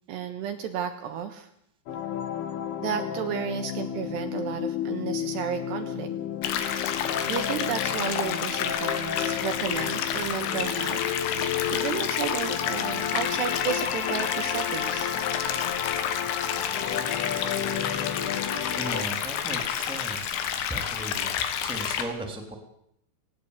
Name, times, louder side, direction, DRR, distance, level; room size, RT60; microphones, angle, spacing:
voice 1, 0.1-1.5 2.8-6.1 7.2-11.0 11.7-15.1, right 8 dB, 70° right, 7 dB, 3.2 m, -32 dB
sound 1, 1.9-19.0, left 9 dB, 60° left, 3.4 m, -32 dB
sound 2, 6.4-22.0, left 9 dB, 85° left, 4.4 m, -30 dB
voice 2, 18.8-21.3 21.6-22.5, right 1 dB, ahead, 4 dB, 2.4 m, -37 dB
19.0 x 18.0 x 8.4 m, 0.73 s
omnidirectional pair, 5.7 m